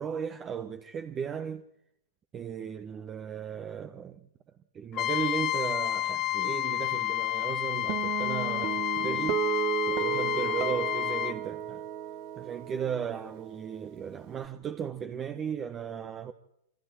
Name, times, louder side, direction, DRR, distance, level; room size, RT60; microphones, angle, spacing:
voice 1, 0.0-1.6 2.3-4.3 4.7-9.4 9.9-11.8 12.4-16.3, right 7 dB, 25° right, 1.3 m, -36 dB
Trumpet, 4.9-11.4, left 15 dB, 30° left, 1.0 m, -30 dB
Guitar, 7.9-14.5, right 12 dB, 40° right, 1.7 m, -34 dB
29.0 x 25.5 x 4.5 m
hypercardioid pair, 115°, 0 cm